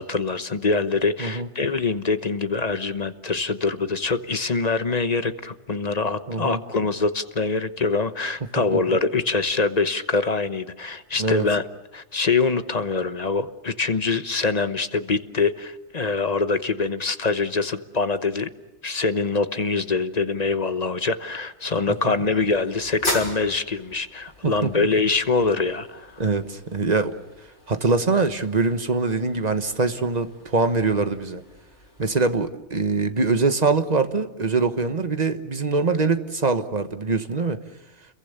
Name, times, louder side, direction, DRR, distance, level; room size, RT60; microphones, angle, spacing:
voice 1, 0.0-11.6 11.9-18.5 18.8-26.2, left 4 dB, 35° left, 10 dB, 1.1 m, -24 dB
voice 2, 6.3-6.6 8.7-9.0 11.2-11.4 21.9-22.0 24.4-24.7 26.2-27.1 27.7-31.4 32.0-37.6, right 4 dB, 35° right, 9 dB, 1.4 m, -23 dB
sound 1, 21.6-32.4, left 1 dB, 75° left, 6.2 m, -38 dB
30.0 x 22.5 x 6.9 m, 1.0 s
omnidirectional pair, 1.2 m